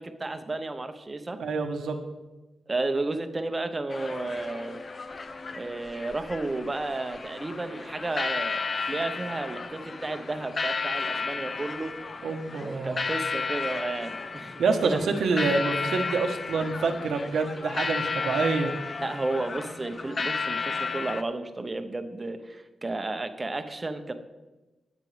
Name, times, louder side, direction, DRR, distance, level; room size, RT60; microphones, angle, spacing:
voice 1, 0.0-1.4 2.7-4.8 5.5-8.6 8.9-11.9 12.6-15.0 19.0-24.1, right 2 dB, 25° right, 8 dB, 1.0 m, -32 dB
voice 2, 1.4-2.0 12.2-13.0 14.6-18.7, right 4 dB, 80° right, 5 dB, 1.2 m, -27 dB
sound 1, 3.9-21.2, left 4 dB, 40° left, 0.7 m, -33 dB
19.0 x 7.5 x 3.4 m, 1.1 s
cardioid pair, 105°, 0 cm